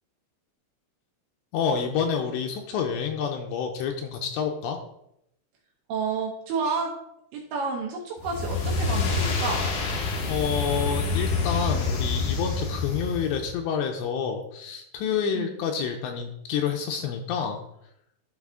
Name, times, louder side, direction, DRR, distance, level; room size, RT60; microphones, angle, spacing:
voice 1, 1.5-4.8 10.2-17.6, left 7 dB, 85° left, 3 dB, 2.5 m, -28 dB
voice 2, 5.9-6.9 7.3-9.7 15.3-15.6, right 4 dB, 75° right, -1 dB, 3.0 m, -30 dB
sound 1, 8.2-13.5, left 3 dB, 65° left, 2.9 m, -27 dB
12.0 x 4.1 x 3.6 m, 0.78 s
omnidirectional pair, 5.7 m